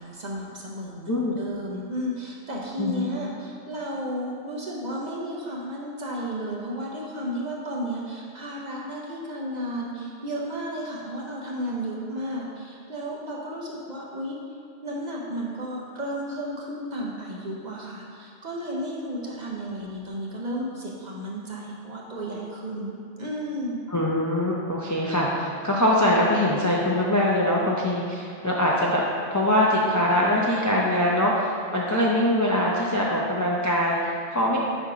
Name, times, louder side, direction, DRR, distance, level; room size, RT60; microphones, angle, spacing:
voice 1, 0.0-14.4 14.8-23.9, equal, 40° right, -3 dB, 0.8 m, -33 dB
voice 2, 2.8-3.1 23.9-29.0 29.3-34.6, left 1 dB, 25° left, -4 dB, 0.4 m, -23 dB
5.4 x 4.4 x 4.8 m, 2.5 s
omnidirectional pair, 1.2 m